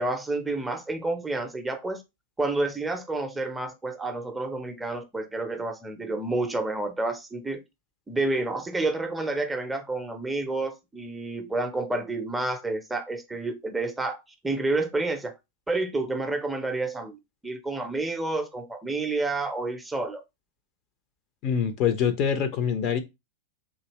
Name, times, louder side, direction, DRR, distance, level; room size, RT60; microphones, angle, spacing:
voice 1, 0.0-2.0 2.4-7.6 8.1-15.3 15.7-20.2, right 2 dB, 10° right, 0.5 m, -29 dB
voice 2, 21.4-23.0, left 7 dB, 40° left, 0.6 m, -25 dB
3.4 x 2.7 x 3.0 m
figure-of-eight pair, 95°, 0 cm